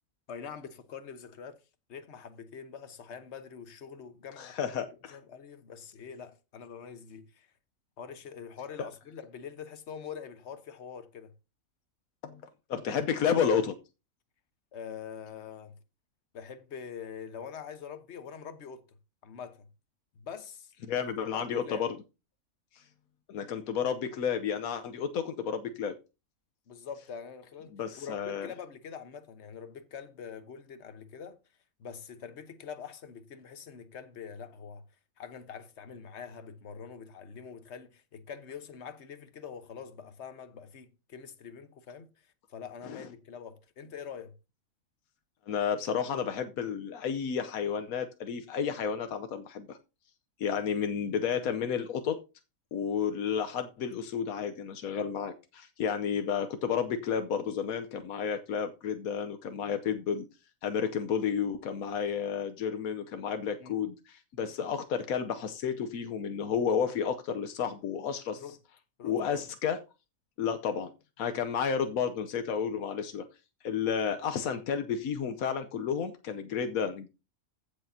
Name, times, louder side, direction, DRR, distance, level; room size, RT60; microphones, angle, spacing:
voice 1, 0.3-1.6 1.9-4.8 5.1-7.5 8.0-11.3 14.7-15.8 16.3-18.8 19.2-19.7 20.1-20.7 21.3-21.9 26.7-31.4 31.8-34.8 35.2-44.3 51.3-51.5 63.6-63.8 68.4-68.6 69.0-69.4, left 7 dB, 55° left, 1.3 m, -44 dB
voice 2, 4.4-5.2 8.8-8.9 12.2-12.4 12.7-13.7 20.9-21.9 22.8-22.9 23.3-25.9 27.7-28.5 42.9-43.1 45.5-49.8 50.4-52.2 52.7-60.3 60.6-68.4 69.0-69.8 70.4-70.9 71.2-73.2 73.6-77.1, left 7 dB, 90° left, 1.3 m, -31 dB
15.0 x 7.0 x 2.7 m
omnidirectional pair, 1.4 m